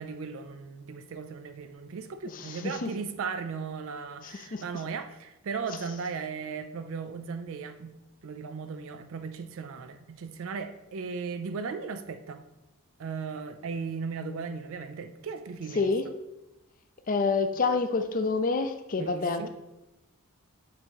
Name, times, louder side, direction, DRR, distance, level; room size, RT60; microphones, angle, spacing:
voice 1, 0.0-8.0 8.2-12.4 13.0-15.9 19.0-19.5, right 5 dB, 60° right, 0.4 m, -37 dB
voice 2, 2.4-2.9 4.2-4.6 15.8-16.0 17.1-19.5, left 4 dB, 40° left, 0.5 m, -28 dB
6.6 x 2.9 x 5.4 m
head